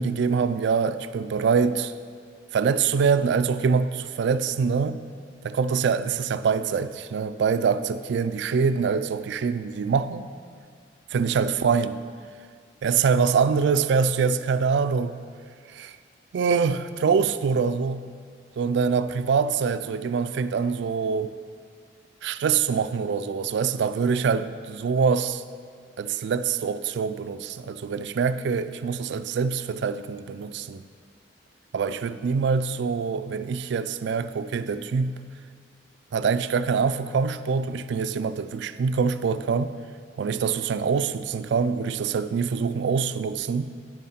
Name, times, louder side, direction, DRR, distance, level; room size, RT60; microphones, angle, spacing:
voice 1, 0.0-1.9 2.5-5.0 5.4-10.3 11.1-12.0 12.8-15.2 15.7-16.0 16.3-18.1 18.6-21.3 22.2-25.4 26.0-30.8 31.7-35.2 36.1-39.7 40.2-43.7, right 5 dB, 65° right, 12 dB, 0.3 m, -24 dB
9.1 x 7.3 x 4.3 m, 2.1 s
head